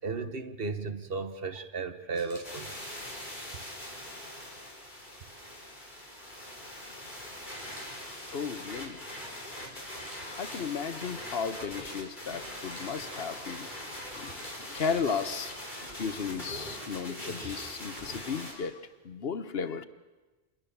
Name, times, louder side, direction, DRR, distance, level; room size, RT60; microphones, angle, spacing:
voice 1, 0.0-2.7, right 4 dB, 60° right, 9 dB, 1.4 m, -35 dB
Camera, 2.1-2.4 7.6-7.9 9.9-10.7 12.5-12.8 14.2-15.3 17.4-17.7, equal, 20° right, 7.8 m, -50 dB
sound 1, 2.4-18.5, left 1 dB, 45° left, 5.4 m, -42 dB
voice 2, 8.3-9.0 10.4-13.7 14.1-18.7 19.0-19.8, left 6 dB, 70° left, 12 dB, 1.2 m, -35 dB
27.0 x 21.0 x 7.0 m, 1.2 s
omnidirectional pair, 1.1 m